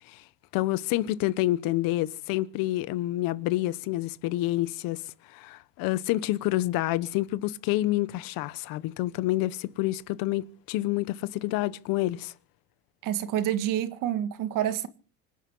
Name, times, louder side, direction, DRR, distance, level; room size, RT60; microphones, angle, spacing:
voice 1, 0.5-5.0 5.3-12.3, left 16 dB, 75° left, 1.1 m, -28 dB
voice 2, 13.0-14.9, right 11 dB, 65° right, 1.8 m, -28 dB
25.5 x 9.9 x 5.5 m
cardioid pair, 140°, 34 cm